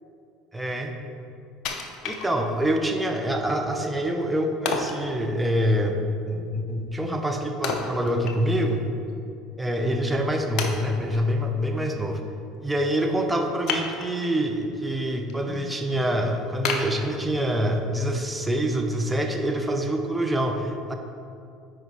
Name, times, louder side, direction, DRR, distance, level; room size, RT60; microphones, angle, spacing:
voice 1, 0.5-0.9 2.0-5.9 6.3-8.9 9.6-12.2 12.6-20.9, equal, 10° right, 4 dB, 0.8 m, -26 dB
Wood, 1.6-2.8 3.2-3.3 4.6-5.1 7.6-8.7 9.1-9.2 9.9-10.0 10.6-11.2 13.6-14.4 14.9-15.3 15.7-15.8 16.6-17.7 18.1-18.2, left 5 dB, 60° left, 0.7 m, -31 dB
9.1 x 5.0 x 3.1 m, 2.6 s
hypercardioid pair, 75°, 0 cm